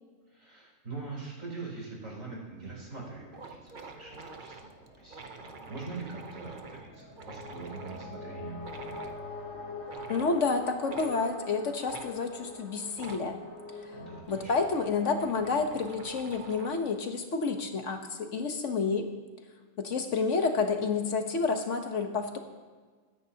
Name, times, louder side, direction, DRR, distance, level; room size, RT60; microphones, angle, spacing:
voice 1, 0.3-4.7 5.0-9.0 13.9-14.5, right 3 dB, 75° right, -3 dB, 4.6 m, -43 dB
sound 1, 2.7-2.8 3.0-3.1 3.3-8.1 8.6-9.2 9.8-10.4 10.9-11.1 11.9-12.1 12.9-13.3 14.0-16.8, right 4 dB, 40° right, 0.9 m, -47 dB
sound 2, 3.0-14.2, left 3 dB, 85° left, 3.3 m, -45 dB
voice 2, 10.1-13.4 14.3-19.1 19.8-22.4, left 4 dB, 65° left, 5 dB, 1.4 m, -29 dB
22.5 x 9.9 x 2.9 m, 1.5 s
omnidirectional pair, 1.4 m